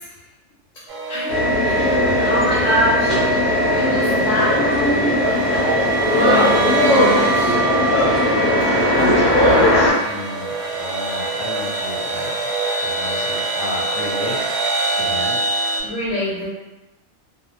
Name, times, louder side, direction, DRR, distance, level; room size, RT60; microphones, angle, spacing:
sound 1, 0.9-15.8, right 2 dB, 85° right, 1.0 m, -25 dB
voice 1, 1.1-5.2 6.1-7.6 8.7-9.0 15.8-16.5, equal, 90° left, -7 dB, 1.1 m, -24 dB
sound 2, 1.3-9.9, left 1 dB, 45° left, 0.9 m, -18 dB
voice 2, 8.6-14.4 15.0-15.4, left 2 dB, 70° left, -3 dB, 1.0 m, -30 dB
2.4 x 2.0 x 2.9 m, 1.0 s
omnidirectional pair, 1.3 m